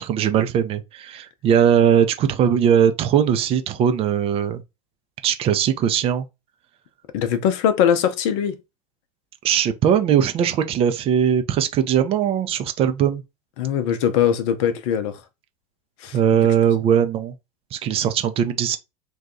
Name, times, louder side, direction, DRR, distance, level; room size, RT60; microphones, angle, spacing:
voice 1, 0.0-4.6 5.2-6.3 9.4-13.2 16.1-17.3 17.7-18.8, right 8 dB, 30° right, 0.4 m, -20 dB
voice 2, 7.1-8.6 13.6-15.2 16.0-16.2, left 9 dB, 50° left, 0.6 m, -21 dB
2.7 x 2.3 x 3.6 m
figure-of-eight pair, 80°, 19 cm